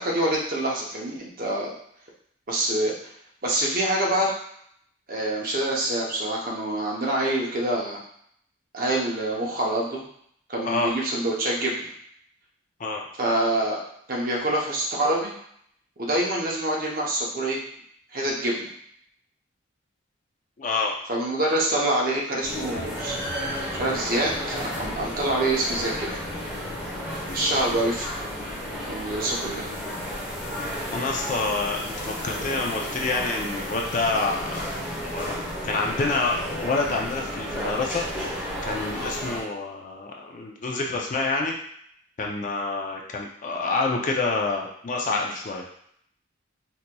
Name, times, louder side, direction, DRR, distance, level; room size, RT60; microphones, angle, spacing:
voice 1, 0.0-1.7 2.5-2.9 3.4-4.4 5.1-8.0 8.7-10.0 10.5-11.9 13.2-13.8 14.1-15.3 16.0-17.6 18.1-18.7 21.1-23.2 23.7-26.1 27.3-28.1 28.9-29.7, right 1 dB, 45° right, -3 dB, 0.7 m, -26 dB
voice 2, 20.6-21.0 30.9-34.7 35.0-38.4 38.6-41.5 42.2-45.6, left 3 dB, 40° left, 0 dB, 0.4 m, -27 dB
sound 1, 22.4-39.4, equal, 5° right, 0.9 m, -32 dB
4.0 x 2.9 x 2.2 m, 0.67 s
head